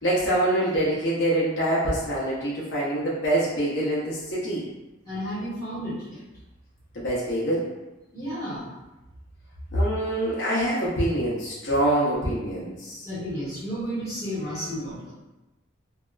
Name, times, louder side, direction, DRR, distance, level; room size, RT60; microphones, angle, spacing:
voice 1, 0.0-4.6 6.9-7.7 9.7-13.0, right 1 dB, 65° left, -7 dB, 0.7 m, -25 dB
voice 2, 5.0-6.2 8.1-8.7 9.7-9.8 13.0-15.1, equal, 15° left, -11 dB, 1.2 m, -32 dB
2.7 x 2.3 x 2.2 m, 1.1 s
head